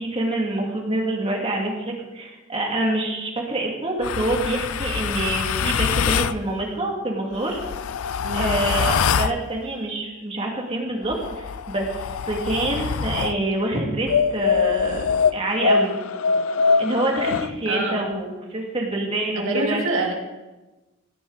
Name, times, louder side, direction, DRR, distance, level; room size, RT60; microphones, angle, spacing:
voice 1, 0.0-7.6 8.3-15.0 15.3-15.9 16.8-19.8, right 2 dB, 30° right, -1 dB, 2.3 m, -26 dB
sound 1, 4.0-6.4 7.3-9.4 11.0-13.4 14.1-17.5, left 6 dB, 85° left, 0.5 m, -23 dB
voice 2, 8.2-8.5 17.7-18.1 19.4-20.1, right 2 dB, 70° right, 1 dB, 2.4 m, -26 dB
16.5 x 10.5 x 4.0 m, 1.1 s
head